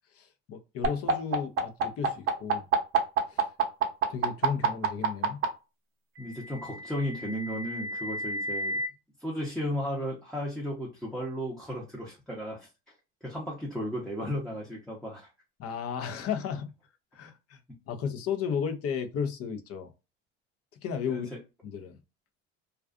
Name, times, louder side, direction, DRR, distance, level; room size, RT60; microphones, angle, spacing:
voice 1, 0.1-2.7 3.3-3.5 4.1-5.4 15.6-16.7 17.1-17.6 17.9-19.9 20.8-21.3 21.6-22.0, left 7 dB, 45° left, 0.6 m, -34 dB
sound 1, 0.8-5.5 6.6-8.9, right 6 dB, 45° right, 0.7 m, -27 dB
voice 2, 6.2-8.8 9.2-12.7 13.2-15.3 21.1-21.2, equal, ahead, 0.7 m, -34 dB
2.4 x 2.3 x 2.3 m
supercardioid pair, 95°, 32 cm